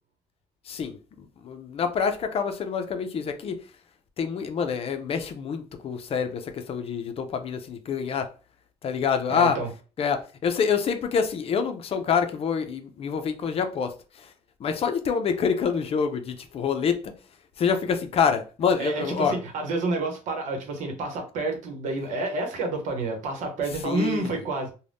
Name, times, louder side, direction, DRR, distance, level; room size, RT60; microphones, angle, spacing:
voice 1, 0.7-3.6 4.2-8.3 8.8-9.6 10.0-14.3 14.6-17.1 17.6-19.4 23.8-24.4, left 6 dB, 50° left, 0.5 m, -26 dB
voice 2, 9.3-9.7 18.8-24.7, right 3 dB, 75° right, 0.9 m, -29 dB
2.6 x 2.2 x 3.4 m
cardioid pair, 95°, 13 cm